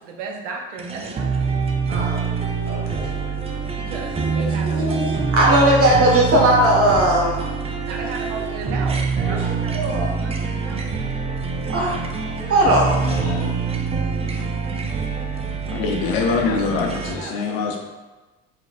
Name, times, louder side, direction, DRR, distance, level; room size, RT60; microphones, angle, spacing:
voice 1, 0.0-1.4 3.7-5.1 5.5-6.1 7.8-11.2 16.5-17.8, right 4 dB, 80° right, 1 dB, 0.7 m, -35 dB
sound 1, 0.8-17.1, right 5 dB, 15° right, 0.4 m, -25 dB
voice 2, 1.9-2.3 2.6-3.1 4.2-7.4 9.2-9.4 9.7-10.1 11.7-12.0 12.5-13.4, right 1 dB, 40° right, -2 dB, 1.4 m, -19 dB
voice 3, 13.0-13.6 14.3-14.4 15.7-17.8, left 4 dB, 65° left, 3 dB, 0.7 m, -24 dB
3.9 x 3.6 x 2.5 m, 1.2 s
hypercardioid pair, 70°, 36 cm